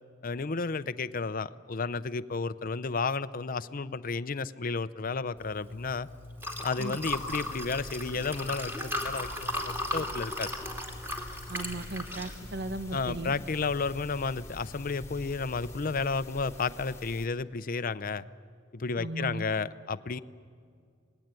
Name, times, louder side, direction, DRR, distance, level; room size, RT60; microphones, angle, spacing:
voice 1, 0.2-6.1 6.6-10.5 12.9-18.3 18.7-20.2, left 4 dB, 45° left, 13 dB, 0.6 m, -32 dB
Liquid, 5.4-15.9, left 1 dB, 10° right, 2.7 m, -38 dB
sound 1, 7.0-17.3, left 1 dB, 15° left, 1.8 m, -48 dB
voice 2, 11.5-13.3 19.0-19.5, right 2 dB, 55° right, 11 dB, 1.1 m, -36 dB
26.5 x 19.5 x 9.1 m, 2.2 s
head